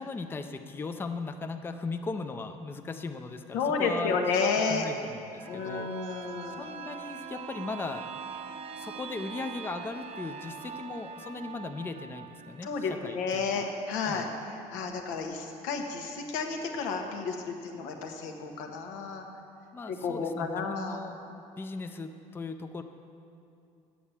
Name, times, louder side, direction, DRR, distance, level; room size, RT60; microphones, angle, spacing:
voice 1, 0.0-4.2 4.7-5.9 6.6-8.0 8.8-13.4 14.1-14.3 19.7-22.8, left 3 dB, 15° left, 7 dB, 0.5 m, -38 dB
voice 2, 3.5-4.8 5.4-6.6 12.6-14.3 14.7-19.3 19.9-21.0, left 5 dB, 90° left, 3 dB, 1.2 m, -31 dB
sound 1, 5.3-14.9 15.3-15.4, right 7 dB, 50° right, 0.6 m, -43 dB
8.5 x 7.0 x 7.2 m, 2.6 s
cardioid pair, 115°, 13 cm